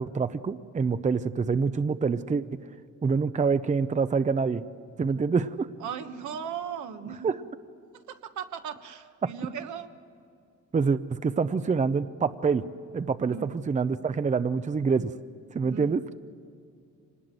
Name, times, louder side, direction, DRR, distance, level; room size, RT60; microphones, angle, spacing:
voice 1, 0.0-2.4 3.0-4.6 5.0-5.7 7.1-7.4 9.2-9.3 10.7-12.6 12.9-15.1 15.5-16.0, right 5 dB, 25° right, 12 dB, 0.7 m, -26 dB
voice 2, 5.8-7.3 8.1-9.9 13.3-13.5 15.6-15.9, right 8 dB, 70° right, 7 dB, 1.4 m, -37 dB
25.5 x 19.5 x 7.7 m, 2.4 s
cardioid pair, 90°, 30 cm